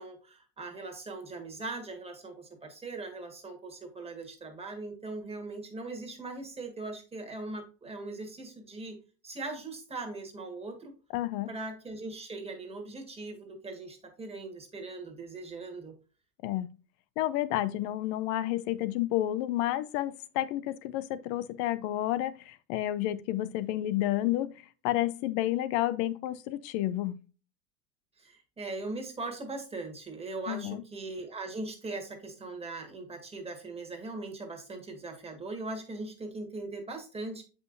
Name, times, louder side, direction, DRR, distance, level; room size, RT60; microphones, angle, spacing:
voice 1, 0.0-9.0 9.2-10.9 11.5-15.9 28.2-37.4, right 3 dB, 10° right, 1.7 m, -40 dB
voice 2, 11.1-11.5 16.4-16.7 17.2-24.5 24.8-27.2 30.5-30.8, left 14 dB, 35° left, 0.4 m, -30 dB
7.8 x 5.6 x 2.6 m
supercardioid pair, 120°, 48 cm